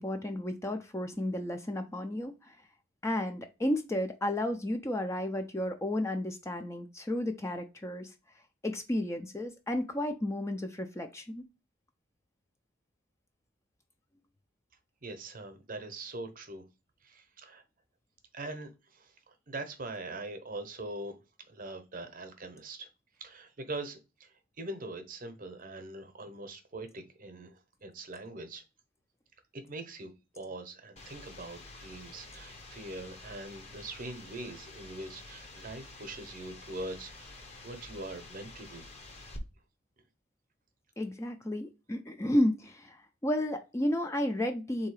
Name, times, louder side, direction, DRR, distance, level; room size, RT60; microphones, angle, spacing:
voice 1, 0.0-2.6 3.0-8.1 8.6-11.4 41.0-43.0 43.2-44.9, left 1 dB, 15° left, 0.4 m, -32 dB
voice 2, 15.0-16.6 17.0-17.6 18.3-21.2 21.5-22.9 23.2-28.6 29.5-38.8, right 2 dB, 45° right, 0.8 m, -42 dB
sound 1, 31.0-39.4, left 2 dB, 35° left, 0.8 m, -49 dB
3.7 x 2.8 x 4.7 m
head